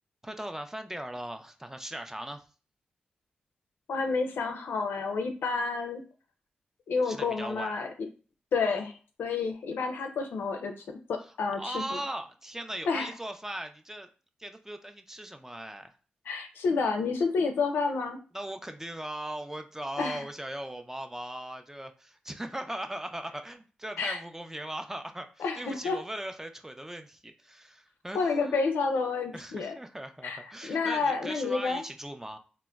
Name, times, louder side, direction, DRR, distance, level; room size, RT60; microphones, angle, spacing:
voice 1, 0.2-2.4 7.0-7.8 11.3-14.1 14.4-16.0 18.3-28.8 29.3-32.4, right 1 dB, 10° right, 6 dB, 0.4 m, -39 dB
voice 2, 3.9-6.0 6.9-7.9 8.5-10.7 11.1-12.0 12.9-13.1 16.3-18.2 20.0-20.2 24.0-24.2 25.4-26.0 28.1-29.7 30.2-31.8, left 4 dB, 80° left, 5 dB, 0.4 m, -29 dB
3.6 x 2.1 x 2.2 m, 0.37 s
supercardioid pair, 45°, 4 cm